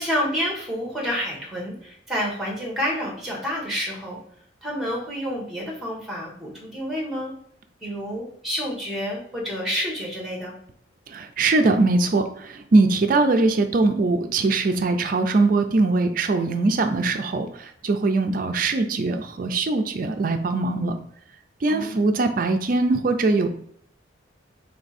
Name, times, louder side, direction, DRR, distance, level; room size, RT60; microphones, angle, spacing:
voice 1, 0.0-4.2 4.6-7.3 7.8-10.5 21.7-22.0, equal, ahead, -2 dB, 1.2 m, -29 dB
voice 2, 11.1-21.0 21.6-23.5, right 3 dB, 45° right, 7 dB, 0.4 m, -21 dB
3.5 x 3.2 x 4.1 m, 0.65 s
head